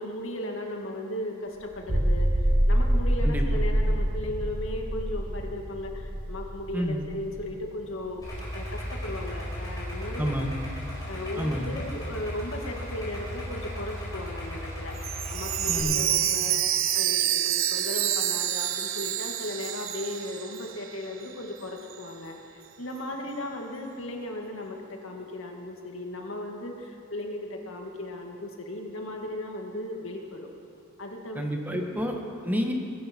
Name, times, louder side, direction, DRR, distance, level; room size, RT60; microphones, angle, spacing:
voice 1, 0.0-8.3 8.5-10.6 11.1-30.5 31.0-32.0 32.5-32.6, left 1 dB, 80° left, 1 dB, 2.1 m, -36 dB
sound 1, 1.7-8.2, equal, 50° right, 1.3 m, -26 dB
voice 2, 6.7-7.1 10.2-10.6 11.4-11.8 15.7-16.1 31.3-32.7, equal, 10° right, 2 dB, 1.5 m, -29 dB
Idling, 8.2-15.8, equal, 20° left, 5.0 m, -36 dB
Chime, 15.0-20.9 21.2-21.3 21.9-22.0, right 11 dB, 85° right, 0.8 m, -28 dB
23.0 x 12.0 x 4.5 m, 2.6 s
head